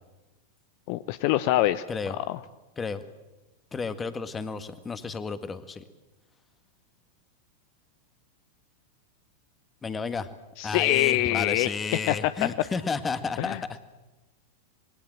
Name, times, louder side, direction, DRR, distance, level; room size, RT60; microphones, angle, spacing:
voice 1, 0.9-1.8 2.1-2.4 10.6-11.8 12.1-12.5 13.4-13.8, left 15 dB, 45° left, 14 dB, 0.8 m, -25 dB
voice 2, 3.7-5.8 9.8-10.3 10.6-13.8, left 5 dB, 15° left, 11 dB, 1.8 m, -32 dB
27.0 x 22.0 x 7.7 m, 1.1 s
figure-of-eight pair, 90°, 0 cm